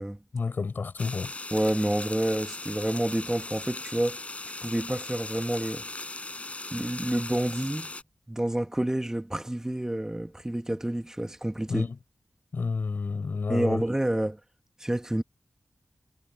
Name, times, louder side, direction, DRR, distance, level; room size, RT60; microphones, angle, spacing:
voice 1, 0.3-1.3 11.7-12.0 12.5-13.8, left 4 dB, 75° left, 4.6 m, -30 dB
sound 1, 1.0-8.0, left 2 dB, 40° left, 6.4 m, -38 dB
voice 2, 1.5-4.2 4.6-5.9 6.7-7.9 8.3-11.9 13.5-14.4 14.8-15.2, right 1 dB, 15° right, 2.0 m, -28 dB
wide cardioid pair, 65°, 3 cm